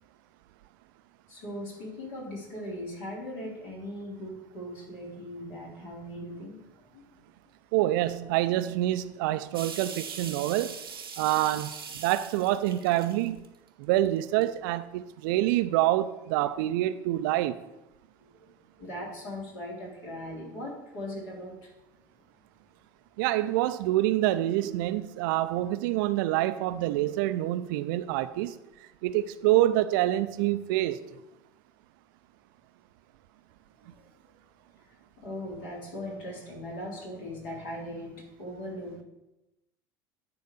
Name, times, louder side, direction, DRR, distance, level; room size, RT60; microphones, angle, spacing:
voice 1, 1.3-7.2 18.2-21.7 33.9-34.1 34.8-39.0, left 1 dB, 60° left, -4 dB, 3.7 m, -39 dB
voice 2, 7.7-10.8 11.2-13.4 13.8-17.6 23.2-28.6 29.0-31.0, right 14 dB, 60° right, 13 dB, 0.5 m, -26 dB
sound 1, 9.5-13.7 14.2-14.4, right 6 dB, 85° right, 0.9 m, -41 dB
9.7 x 3.9 x 6.6 m, 0.95 s
figure-of-eight pair, 70°, 12 cm